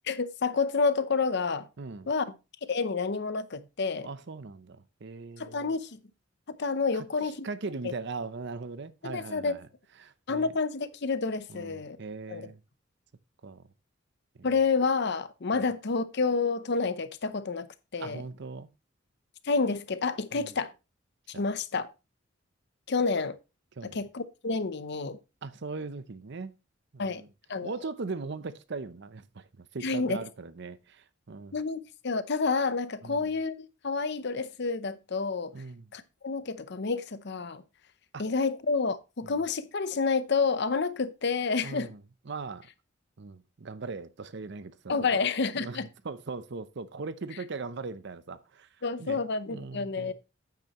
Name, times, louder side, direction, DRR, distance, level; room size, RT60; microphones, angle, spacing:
voice 1, 0.1-1.7 2.1-2.2 2.7-4.1 5.4-6.0 6.5-7.4 9.0-9.5 10.3-12.0 12.3-12.5 14.4-17.7 17.9-18.2 19.4-20.7 21.4-21.9 22.9-23.4 23.8-25.2 27.0-27.2 27.5-27.7 29.8-30.2 31.5-35.5 35.9-37.6 38.2-41.9 44.9-45.9 48.8-50.1, left 4 dB, 60° left, 0.7 m, -29 dB
voice 2, 1.8-2.1 4.0-5.7 6.9-9.7 10.0-10.5 11.5-12.6 13.4-13.7 14.3-14.5 15.5-15.7 18.0-18.7 20.3-20.5 21.3-21.4 23.8-24.0 25.4-26.5 26.9-27.3 27.6-31.6 33.0-33.3 35.5-35.9 38.1-38.3 39.2-39.4 41.6-42.7 43.2-45.2 45.6-48.7 49.0-49.2 49.5-50.1, right 4 dB, 60° right, 0.7 m, -40 dB
8.8 x 8.2 x 3.0 m
head